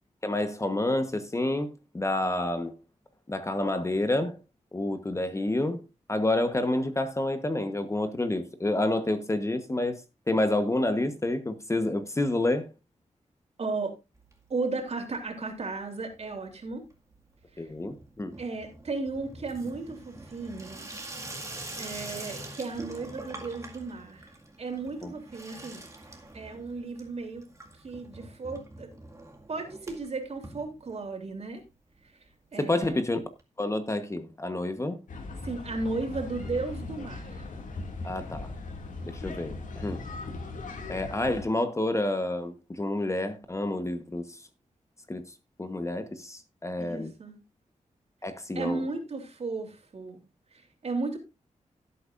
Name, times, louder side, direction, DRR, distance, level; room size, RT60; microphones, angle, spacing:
voice 1, 0.2-2.7 3.3-4.4 4.7-5.8 6.1-10.0 10.3-12.7 17.6-18.3 25.0-25.1 32.6-33.2 33.6-35.0 38.0-38.5 39.1-40.0 40.9-44.4 45.1-45.2 45.6-47.1 48.2-48.8, left 2 dB, 20° left, 1.2 m, -29 dB
voice 2, 13.6-13.9 14.5-16.8 17.5-17.7 18.4-20.9 21.2-21.3 21.8-24.3 24.6-25.8 26.3-27.4 27.8-28.9 29.5-31.6 32.0-32.2 32.5-33.0 35.4-37.5 46.8-47.4 48.5-50.2 50.5-51.2, right 3 dB, 55° right, 3.3 m, -35 dB
Water tap faucet / Sink (filling or washing), 14.1-14.9 15.2-15.8 16.0-31.3 31.7-31.8 31.9-32.0 32.3-32.4 33.4-33.5, right 2 dB, 25° right, 2.0 m, -45 dB
sound 1, 35.1-41.4, left 3 dB, 85° left, 2.4 m, -38 dB
16.5 x 8.4 x 2.6 m
wide cardioid pair, 110°, 13 cm